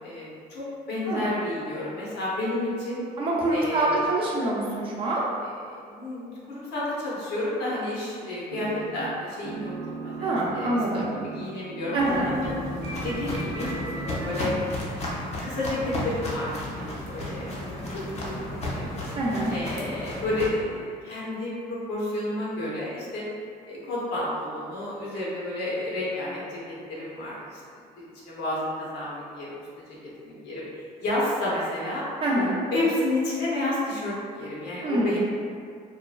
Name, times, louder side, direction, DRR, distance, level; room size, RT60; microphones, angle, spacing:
voice 1, 0.0-3.0 3.5-4.1 5.7-9.7 10.0-12.6 13.0-14.5 14.8-18.9 19.5-23.2 23.7-26.6 26.9-32.0 32.7-35.2, left 1 dB, 80° left, -7 dB, 0.9 m, -31 dB
voice 2, 3.2-5.2 10.2-11.1 11.9-12.3 19.2-19.5 32.2-32.6 34.8-35.2, right 1 dB, 30° right, -5 dB, 0.6 m, -25 dB
sound 1, 8.5-9.1 9.4-14.5, right 3 dB, 85° right, 0.4 m, -36 dB
Walk footsteps, 12.0-20.5, left 1 dB, 40° left, 0.6 m, -34 dB
3.0 x 2.2 x 2.3 m, 2.2 s
cardioid pair, 110°, 17 cm